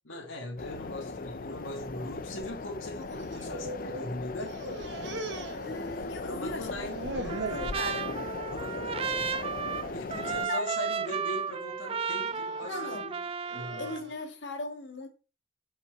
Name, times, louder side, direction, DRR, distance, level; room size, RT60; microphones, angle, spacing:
voice 1, 0.1-4.5 6.2-7.8 8.5-9.6 9.9-13.2 13.5-14.0, left 1 dB, 80° left, 2.4 m, -40 dB
sound 1, 0.6-10.5, left 3 dB, 45° left, 0.5 m, -38 dB
sound 2, 3.0-4.1 4.4-6.3 6.6-7.7 8.2-8.5 8.9-9.1 9.9-10.3 10.8-11.2 12.0-14.2, right 2 dB, 60° right, 1.1 m, -41 dB
voice 2, 5.6-6.7 7.5-8.1 10.2-10.7 12.7-13.0 13.8-15.1, left 2 dB, 65° left, 1.8 m, -38 dB
Trumpet, 7.3-14.0, right 6 dB, 30° right, 0.4 m, -34 dB
7.6 x 5.7 x 4.5 m
head